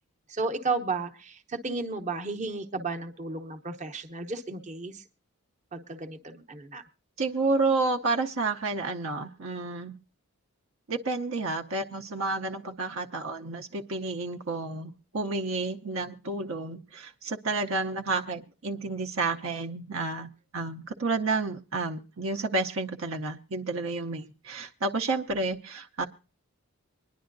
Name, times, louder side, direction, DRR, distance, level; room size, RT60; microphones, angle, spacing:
voice 1, 0.3-5.0 5.7-6.8, right 3 dB, 30° right, 6 dB, 0.8 m, -33 dB
voice 2, 7.2-10.0 10.9-26.1, right 3 dB, 60° right, 4 dB, 0.7 m, -30 dB
24.5 x 10.5 x 2.6 m, 0.34 s
head